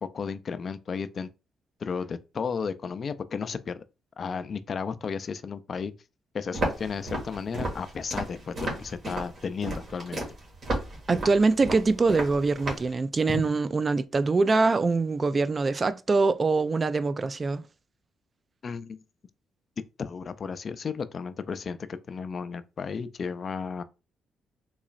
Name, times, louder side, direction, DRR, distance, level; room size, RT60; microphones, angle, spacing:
voice 1, 0.0-1.3 1.8-3.8 4.2-5.9 6.3-10.3 13.3-13.4 18.6-19.0 20.0-21.8 22.1-23.8, left 5 dB, 45° left, 0.4 m, -33 dB
Walk footsteps, 6.5-12.9, right 1 dB, 50° right, 1.6 m, -33 dB
voice 2, 11.1-17.6, right 3 dB, 30° right, 0.3 m, -24 dB
3.8 x 3.0 x 2.5 m
cardioid pair, 90°, 0 cm